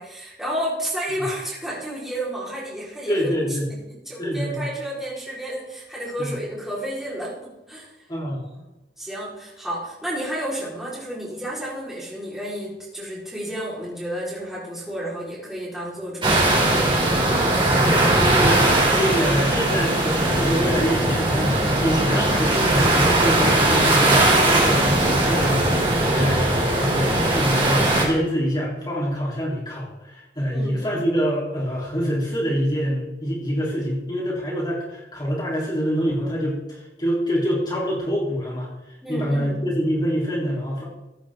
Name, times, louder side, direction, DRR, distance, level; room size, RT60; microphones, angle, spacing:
voice 1, 0.0-3.2 4.0-7.9 9.0-16.9 26.1-26.4 30.5-30.8 39.0-39.6, right 1 dB, 5° right, -7 dB, 4.6 m, -31 dB
voice 2, 3.1-3.7 4.2-4.5 6.2-6.3 8.1-8.4 18.1-25.7 26.0-38.7 39.1-40.8, equal, 25° left, -5 dB, 3.8 m, -25 dB
sound 1, 16.2-28.0, right 1 dB, 30° right, 3.7 m, -19 dB
15.0 x 9.8 x 3.8 m, 1.0 s
head